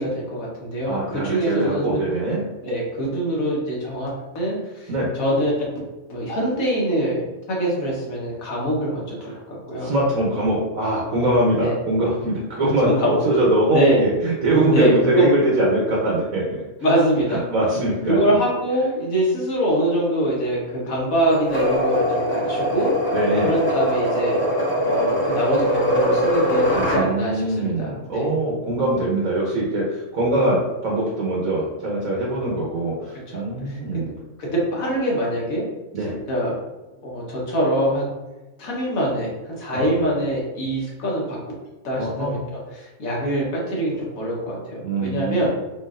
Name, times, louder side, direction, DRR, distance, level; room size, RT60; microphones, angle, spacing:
voice 1, 0.0-2.0 2.6-4.9 5.2-5.7 6.1-9.9 11.6-11.7 12.6-13.2 13.7-14.0 14.7-15.3 16.8-17.4 18.1-22.9 23.4-24.4 24.8-28.3 33.3-33.4 33.7-34.1 34.5-35.6 36.3-36.6 37.0-38.0 38.6-41.5 41.8-45.5, right 1 dB, 80° left, -4 dB, 1.8 m, -24 dB
voice 2, 0.9-2.4 4.9-5.1 9.2-9.4 9.8-16.6 17.3-18.2 23.1-23.6 26.7-34.1 35.9-36.1 39.7-39.9 41.9-42.4 44.8-45.5, right 1 dB, 90° right, -4 dB, 1.5 m, -22 dB
sound 1, 21.3-27.0, equal, 10° left, 0.8 m, -22 dB
4.5 x 4.1 x 2.6 m, 1.1 s
omnidirectional pair, 1.4 m